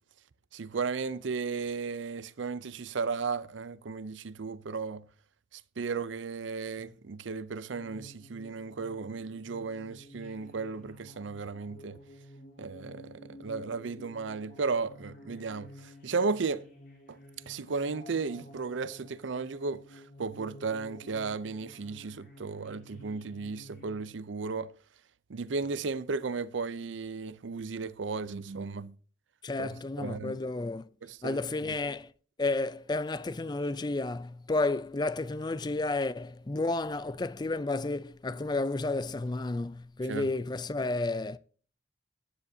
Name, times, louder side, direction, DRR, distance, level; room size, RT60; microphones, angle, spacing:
voice 1, 0.5-5.0 5.5-12.0 12.6-16.6 17.1-17.2 17.5-24.7 25.3-29.0 29.6-29.7 30.0-30.4 31.0-31.7 40.1-40.3, right 4 dB, 80° right, 0.6 m, -35 dB
sound 1, 7.7-24.0, left 1 dB, 50° left, 3.6 m, -52 dB
voice 2, 29.4-30.9 31.2-32.1 32.4-41.4, left 2 dB, 20° left, 0.4 m, -31 dB
14.5 x 9.8 x 2.7 m
head